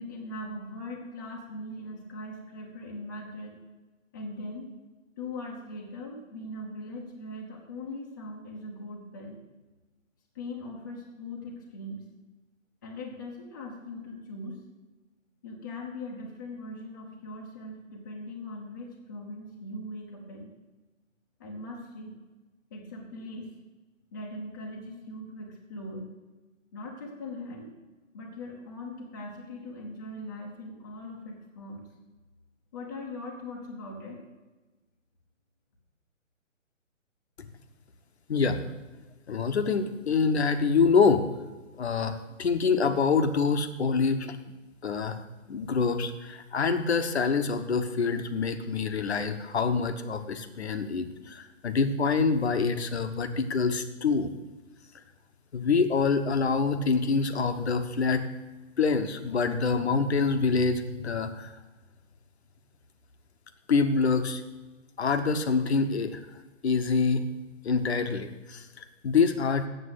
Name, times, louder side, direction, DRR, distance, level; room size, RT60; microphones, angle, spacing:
voice 1, 0.0-3.6 4.1-4.7 5.2-9.4 10.3-12.0 12.8-14.6 15.4-20.5 21.4-22.2 22.7-23.5 24.1-26.1 26.7-27.7 28.1-31.9 32.7-34.2, left 1 dB, 15° left, -2 dB, 0.9 m, -40 dB
voice 2, 39.3-41.2 41.8-44.4 44.8-45.2 45.5-54.3 55.5-58.2 58.8-61.5 63.7-64.4 65.0-66.2 66.6-67.3 67.6-69.7, left 5 dB, 55° left, 9 dB, 1.0 m, -26 dB
7.8 x 7.6 x 7.9 m, 1.2 s
hypercardioid pair, 165°, 39 cm